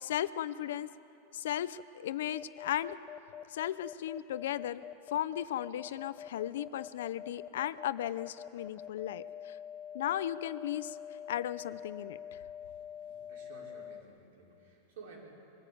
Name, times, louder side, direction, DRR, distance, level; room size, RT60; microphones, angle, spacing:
voice 1, 0.0-0.9 1.3-3.0 3.5-4.8 5.1-9.6 9.9-11.0 11.3-12.2, left 11 dB, 70° left, 16 dB, 0.6 m, -35 dB
sound 1, 2.3-14.0, left 9 dB, 25° left, 0.6 m, -45 dB
voice 2, 12.6-15.2, right 4 dB, 65° right, -2 dB, 4.8 m, -54 dB
22.5 x 14.5 x 8.6 m, 2.9 s
supercardioid pair, 180°, 0 cm